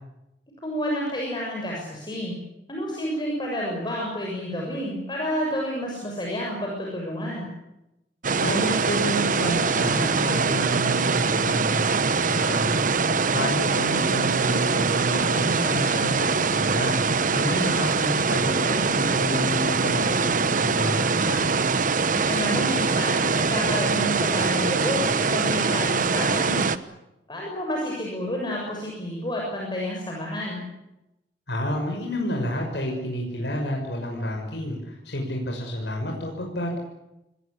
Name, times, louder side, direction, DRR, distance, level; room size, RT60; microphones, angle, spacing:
voice 1, 0.6-2.4 2.7-7.5 17.4-17.7 22.1-26.7 27.3-30.6, equal, 25° left, -2 dB, 7.0 m, -30 dB
sound 1, 8.2-26.8, right 4 dB, 50° right, 1.1 m, -23 dB
voice 2, 8.4-12.8 13.1-17.0 17.3-21.5 31.5-36.8, equal, 75° left, 0 dB, 6.2 m, -30 dB
27.0 x 20.5 x 8.4 m, 0.89 s
head